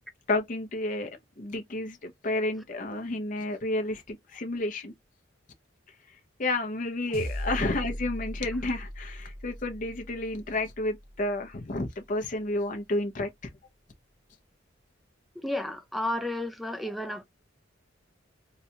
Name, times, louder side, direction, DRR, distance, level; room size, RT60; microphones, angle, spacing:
voice 1, 0.3-1.1 1.4-4.9 6.4-13.3, left 2 dB, 45° left, 0.6 m, -31 dB
sound 1, 7.1-11.7, equal, 50° right, 1.0 m, -38 dB
voice 2, 15.4-17.2, left 1 dB, ahead, 0.4 m, -32 dB
3.8 x 2.2 x 2.8 m
head